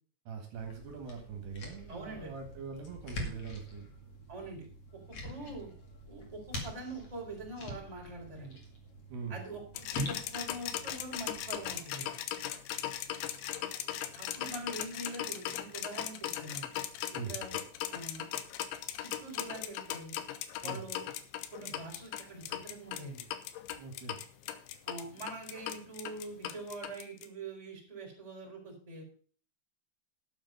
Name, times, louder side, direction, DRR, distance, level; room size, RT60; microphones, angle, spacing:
voice 1, 0.3-3.9 5.3-5.6 9.1-9.4 17.1-17.3 20.6-20.8 23.8-24.2, right 5 dB, 65° right, 2 dB, 3.7 m, -42 dB
sound 1, 0.6-11.8, left 1 dB, 40° left, 2.6 m, -44 dB
voice 2, 1.9-2.3 4.3-4.6 5.1-5.7 6.1-8.6 9.3-12.1 14.1-16.7 17.2-17.5 17.9-18.2 19.0-20.2 20.6-21.0 21.5-23.2 24.9-29.0, right 2 dB, 10° right, -2 dB, 3.7 m, -44 dB
sound 2, 9.8-27.3, left 11 dB, 90° left, 3.2 m, -38 dB
12.0 x 7.3 x 5.5 m, 0.43 s
omnidirectional pair, 5.2 m